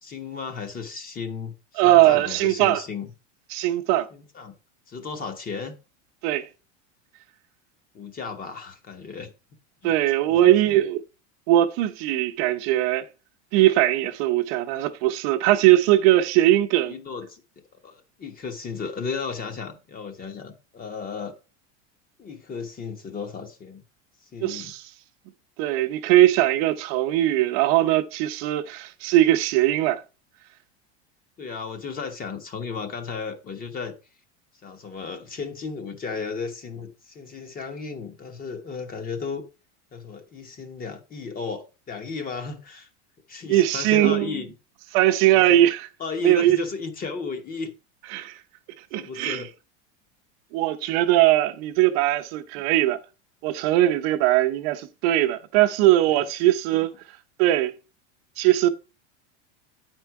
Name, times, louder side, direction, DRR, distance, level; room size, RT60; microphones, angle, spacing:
voice 1, 0.0-3.1 4.1-4.5 4.9-5.7 7.9-9.3 9.8-9.9 10.3-10.8 16.9-17.4 17.8-21.4 22.2-23.8 24.3-24.7 31.4-33.9 34.6-39.5 39.9-42.9 43.3-44.5 45.3-45.6 46.0-47.7 49.0-49.5 56.1-56.2 56.4-56.5, left 5 dB, 25° left, 1.1 m, -34 dB
voice 2, 1.8-2.8 3.5-4.1 6.2-6.5 9.8-11.0 11.5-13.1 13.5-17.0 24.4-24.8 25.6-30.0 43.5-44.4 44.9-45.9 46.2-46.6 48.1-48.4 48.9-49.4 50.5-53.0 53.4-56.9 57.4-57.7 58.4-58.7, right 14 dB, 60° right, 0.8 m, -20 dB
8.5 x 4.5 x 4.6 m
supercardioid pair, 130°, 35 cm